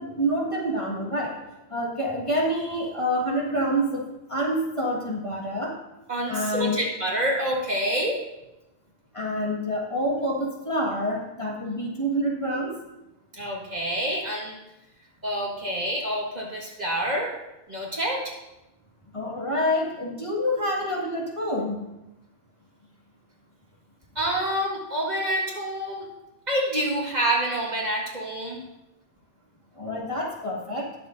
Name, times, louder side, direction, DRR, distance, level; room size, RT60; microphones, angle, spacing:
voice 1, 0.0-1.4 1.7-4.0 4.3-5.7 6.3-6.8 9.1-12.8 19.1-21.9 29.8-30.9, equal, 25° left, -4 dB, 1.8 m, -27 dB
voice 2, 6.1-8.2 13.3-14.6 15.2-17.3 17.7-18.3 24.2-26.0 26.5-28.6, right 1 dB, 35° right, -3 dB, 1.9 m, -27 dB
19.5 x 6.9 x 2.6 m, 0.95 s
omnidirectional pair, 1.2 m